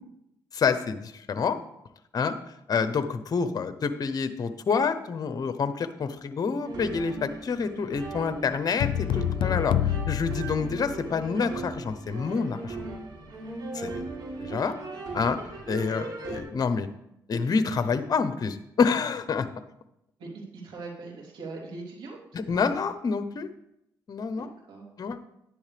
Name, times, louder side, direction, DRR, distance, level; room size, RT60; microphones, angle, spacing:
voice 1, 0.5-1.6 2.1-2.3 2.7-12.8 13.7-14.0 14.4-14.7 15.1-15.4 15.7-16.9 17.3-19.5 22.3-23.5 24.1-24.5 25.0-25.2, left 5 dB, 50° left, 11 dB, 0.8 m, -27 dB
sound 1, 6.6-16.4, right 3 dB, 60° right, 3.3 m, -38 dB
sound 2, 8.8-11.3, left 11 dB, 85° left, 0.3 m, -28 dB
voice 2, 20.2-22.2 24.4-24.9, right 3 dB, 85° right, -1 dB, 3.2 m, -41 dB
10.5 x 10.5 x 3.4 m, 0.79 s
cardioid pair, 70°, 8 cm